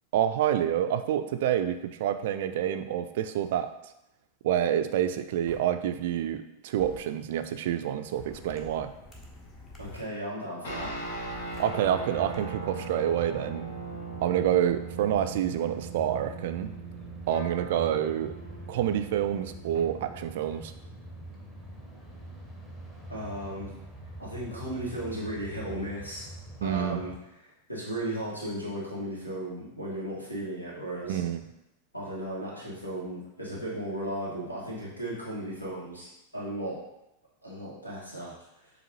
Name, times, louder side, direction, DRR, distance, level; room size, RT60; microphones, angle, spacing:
voice 1, 0.1-3.9 4.4-8.9 11.6-13.7 14.2-16.7 17.3-18.4 18.7-20.7 26.6-27.0 31.1-31.4, right 10 dB, 55° right, 9 dB, 0.3 m, -28 dB
sound 1, 5.5-5.6 6.8-7.0 8.1-10.0 10.7-12.4, left 2 dB, 25° left, 0.9 m, -48 dB
voice 2, 9.8-10.9 23.1-23.7 24.2-26.3 26.6-27.1 27.4-31.2 31.9-36.8 37.4-38.3 38.6-38.7, right 1 dB, 85° left, -5 dB, 1.4 m, -35 dB
sound 2, 10.6-20.3, right 3 dB, 60° left, 1.0 m, -40 dB
sound 3, 11.6-27.2, right 1 dB, 5° left, 0.9 m, -44 dB
7.2 x 2.6 x 2.8 m, 0.88 s
figure-of-eight pair, 90°, 0 cm